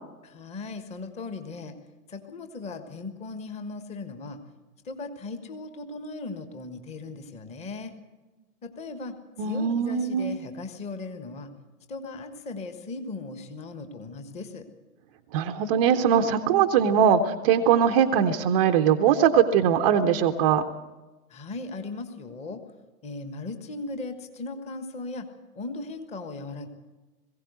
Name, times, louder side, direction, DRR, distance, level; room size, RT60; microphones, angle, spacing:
voice 1, 0.2-1.7 2.1-4.4 4.8-7.9 8.6-11.5 11.9-14.7 21.3-22.6 23.0-25.3 25.5-26.7, left 3 dB, 15° left, 8 dB, 1.3 m, -37 dB
voice 2, 9.4-10.4 15.3-20.6, right 8 dB, 25° right, 4 dB, 0.7 m, -21 dB
21.0 x 16.0 x 8.1 m, 1.2 s
figure-of-eight pair, 120°, 47 cm